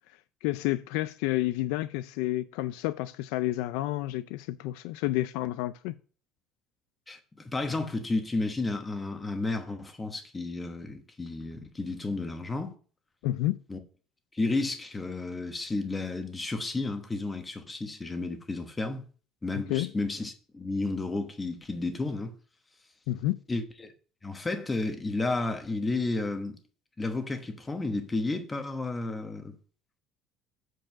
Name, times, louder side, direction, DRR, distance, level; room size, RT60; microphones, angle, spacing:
voice 1, 0.4-5.9 13.2-13.6 19.5-19.9 23.1-23.4, left 16 dB, 90° left, 0.4 m, -30 dB
voice 2, 7.1-12.7 13.7-13.8 14.3-19.0 19.4-22.3 23.5-23.9 24.2-26.6 27.0-29.6, left 2 dB, 15° left, 1.1 m, -32 dB
7.5 x 4.7 x 6.0 m
cardioid pair, 150°, 0 cm